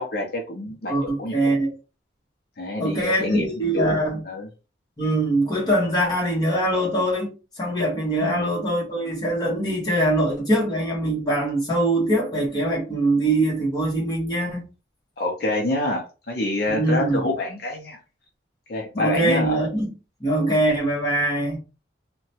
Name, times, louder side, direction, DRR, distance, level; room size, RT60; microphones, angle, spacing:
voice 1, 0.0-1.3 2.6-4.5 8.2-8.5 15.2-18.0 18.7-19.6, left 2 dB, 55° left, 0.6 m, -27 dB
voice 2, 0.9-1.7 2.8-4.2 5.0-14.6 16.7-17.3 18.9-19.9 20.2-21.6, right 1 dB, 25° left, 1.1 m, -23 dB
2.8 x 2.2 x 2.8 m
head